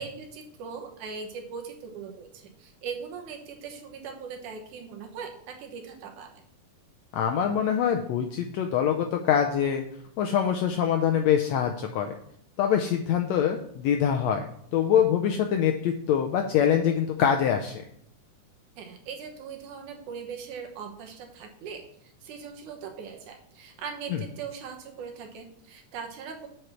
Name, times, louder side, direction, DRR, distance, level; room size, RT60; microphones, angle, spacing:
voice 1, 0.0-6.4 18.8-26.5, right 6 dB, 75° right, 4 dB, 2.5 m, -40 dB
voice 2, 7.1-9.8 10.2-12.1 12.6-17.9 24.1-24.2, left 8 dB, 80° left, 4 dB, 1.6 m, -24 dB
8.0 x 4.6 x 5.7 m, 0.66 s
omnidirectional pair, 3.7 m